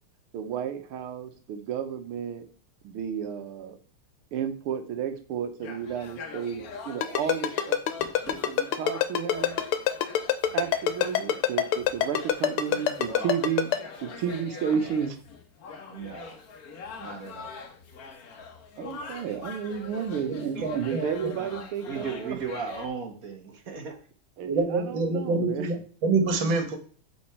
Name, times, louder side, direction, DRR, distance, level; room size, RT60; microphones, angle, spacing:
voice 1, 0.3-2.5 2.8-3.8 4.3-7.8 8.3-9.6 10.5-13.7 14.0-15.2 18.8-22.4 24.4-25.7 26.3-26.6, right 8 dB, 85° right, 8 dB, 1.8 m, -32 dB
sound 1, 5.6-22.9, left 5 dB, 50° left, 1.3 m, -43 dB
Ringtone, 7.0-13.8, left 11 dB, 85° left, 1.7 m, -24 dB
voice 2, 12.4-13.3 14.7-14.9 15.9-16.4 17.0-17.7 20.5-20.7 21.4-24.0, right 5 dB, 45° right, 4 dB, 1.4 m, -37 dB
voice 3, 20.3-21.3 24.4-26.8, right 3 dB, 60° right, 6 dB, 2.1 m, -27 dB
8.7 x 4.3 x 4.3 m, 0.43 s
omnidirectional pair, 2.4 m